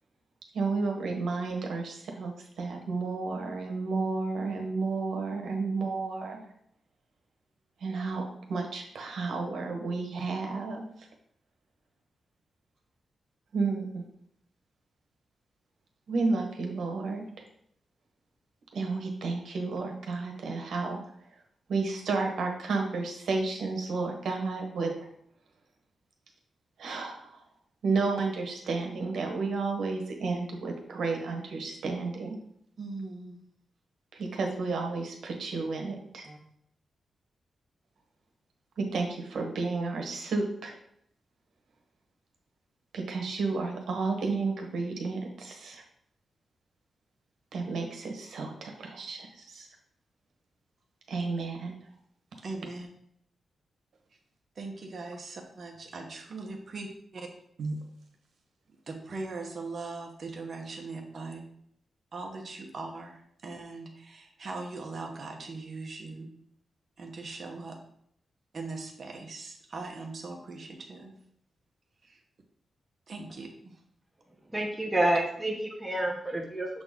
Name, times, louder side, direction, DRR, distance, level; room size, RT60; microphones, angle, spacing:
voice 1, 0.5-6.5 7.8-8.2 8.5-10.8 13.5-14.1 16.1-17.3 18.7-21.0 21.7-24.9 26.8-27.4 27.8-32.4 34.1-36.3 38.8-40.7 42.9-45.8 47.5-49.7 51.1-51.7 57.6-57.7, right 3 dB, 75° right, 2 dB, 1.2 m, -32 dB
voice 2, 32.8-33.4 36.2-36.4 52.4-52.9 54.6-56.9 57.1-57.3 58.9-61.4 62.1-66.3 67.0-67.8 68.5-71.1 72.0-72.2 73.1-73.7, right 3 dB, 40° right, 2 dB, 1.1 m, -40 dB
voice 3, 74.5-76.7, right 1 dB, 5° right, 0 dB, 0.7 m, -28 dB
7.0 x 4.0 x 3.7 m, 0.70 s
wide cardioid pair, 160°, 0 cm